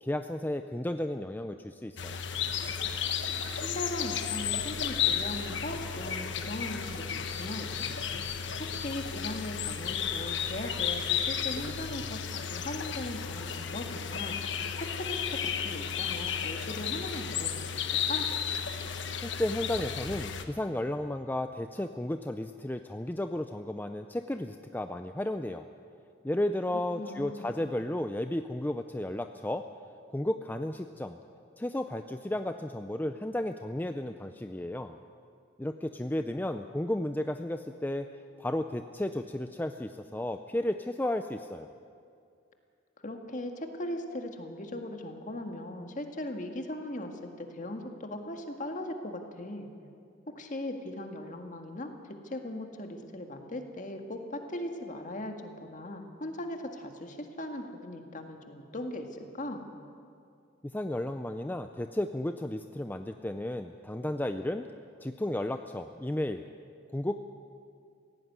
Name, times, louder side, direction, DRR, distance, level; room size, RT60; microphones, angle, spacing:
voice 1, 0.0-2.2 19.2-25.6 26.2-29.6 30.1-31.2 31.6-35.0 35.6-38.1 38.4-41.7 60.6-64.7 65.0-66.4 66.9-67.2, left 1 dB, 10° left, 7 dB, 0.4 m, -33 dB
sound 1, 2.0-20.4, left 7 dB, 65° left, 1.3 m, -33 dB
voice 2, 3.5-8.1 8.6-14.4 14.8-18.3 27.0-27.7 43.0-49.7 50.3-51.9 52.2-59.7, left 1 dB, 40° left, 4 dB, 1.9 m, -39 dB
17.0 x 16.0 x 9.5 m, 2.4 s
head